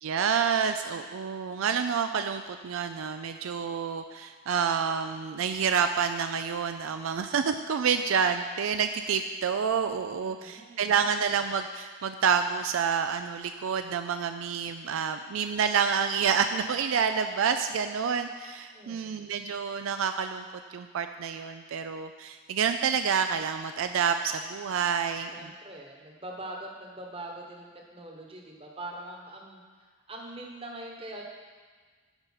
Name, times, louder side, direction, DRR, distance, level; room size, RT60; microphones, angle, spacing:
voice 1, 0.0-20.5 20.7-25.3, right 6 dB, 70° right, 8 dB, 0.4 m, -28 dB
voice 2, 10.1-10.9 18.7-19.3 25.3-31.2, right 1 dB, 25° right, 0 dB, 1.1 m, -43 dB
10.5 x 5.3 x 5.7 m, 1.5 s
head